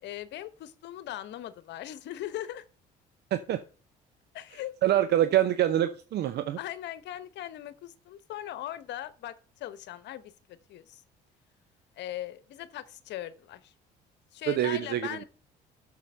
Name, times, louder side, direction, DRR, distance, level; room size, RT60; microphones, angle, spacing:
voice 1, 0.0-2.6 4.3-4.7 6.6-11.0 12.0-13.7 14.3-15.2, left 13 dB, 65° left, 1.0 m, -39 dB
voice 2, 3.3-3.6 4.8-6.6 14.5-15.1, right 12 dB, 60° right, 0.8 m, -25 dB
7.5 x 7.0 x 6.8 m
supercardioid pair, 65°, 19 cm